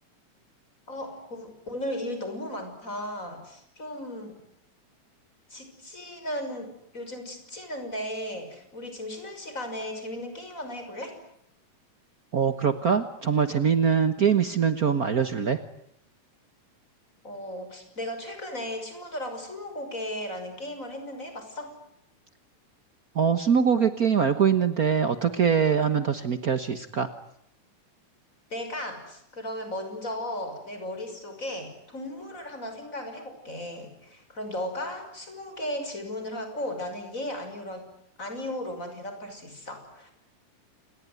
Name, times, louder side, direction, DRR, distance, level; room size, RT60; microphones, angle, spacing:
voice 1, 0.9-4.4 5.5-11.2 17.2-21.8 28.5-37.9 38.2-40.1, left 1 dB, 25° left, 6 dB, 6.3 m, -36 dB
voice 2, 12.3-15.6 23.1-27.1, right 7 dB, 80° right, 10 dB, 0.8 m, -23 dB
28.5 x 20.5 x 9.7 m, 0.75 s
omnidirectional pair, 3.7 m